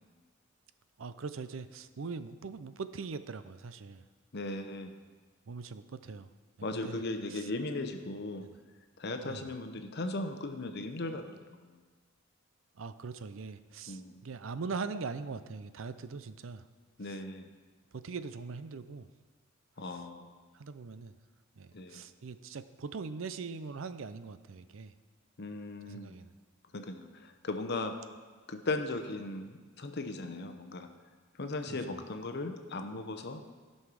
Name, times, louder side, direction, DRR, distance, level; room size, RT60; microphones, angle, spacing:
voice 1, 1.0-4.1 5.5-6.3 6.7-7.0 7.3-7.5 8.4-8.5 9.2-9.5 12.8-16.7 17.0-17.2 17.9-19.1 19.9-20.0 20.5-21.1 21.6-24.9 25.9-26.3 31.7-31.8, right 4 dB, 70° right, 12 dB, 0.5 m, -41 dB
voice 2, 4.3-5.0 6.6-8.5 9.0-11.8 13.9-14.1 17.0-17.5 19.8-20.3 21.7-22.0 25.4-26.2 26.7-28.0 28.5-30.9 31.4-33.4, left 2 dB, 55° left, 7 dB, 0.9 m, -37 dB
13.5 x 5.5 x 6.2 m, 1.4 s
head